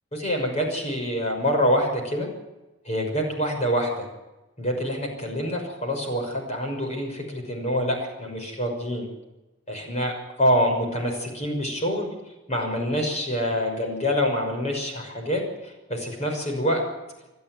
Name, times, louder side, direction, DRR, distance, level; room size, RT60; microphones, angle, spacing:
voice 1, 0.1-2.3 2.8-4.1 4.6-9.1 9.7-12.1 12.5-16.8, equal, 30° left, 2 dB, 6.1 m, -26 dB
29.5 x 12.5 x 9.6 m, 1.1 s
head